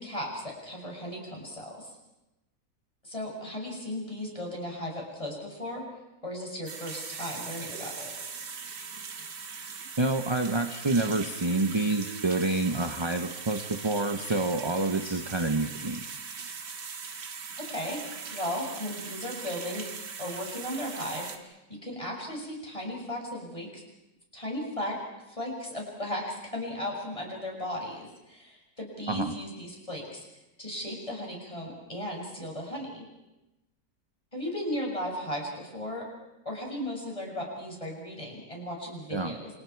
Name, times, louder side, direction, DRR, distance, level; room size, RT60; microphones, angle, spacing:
voice 1, 0.0-1.9 3.0-5.8 6.2-8.1 17.6-18.0 18.3-23.8 24.3-25.0 25.3-30.2 30.6-33.0 34.3-36.1 36.5-39.5, left 1 dB, 15° left, -1 dB, 6.9 m, -36 dB
sound 1, 6.7-21.4, right 5 dB, 75° right, 2.3 m, -40 dB
voice 2, 10.0-16.0 29.1-29.3 39.1-39.3, right 2 dB, 20° right, 6 dB, 0.8 m, -28 dB
28.5 x 28.5 x 4.7 m, 0.95 s
omnidirectional pair, 1.9 m